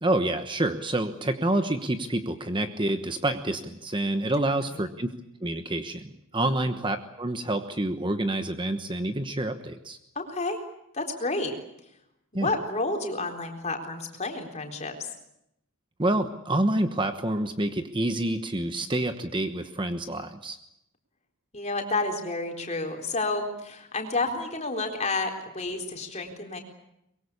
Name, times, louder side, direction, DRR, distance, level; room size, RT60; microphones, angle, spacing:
voice 1, 0.0-5.1 5.4-10.0 12.3-12.5 16.0-20.6, right 1 dB, 20° right, 8 dB, 1.1 m, -28 dB
voice 2, 10.2-10.6 10.9-11.5 12.3-15.1 18.7-18.8 21.5-26.6, left 3 dB, 30° left, 3 dB, 4.0 m, -30 dB
24.0 x 22.5 x 8.5 m, 0.81 s
head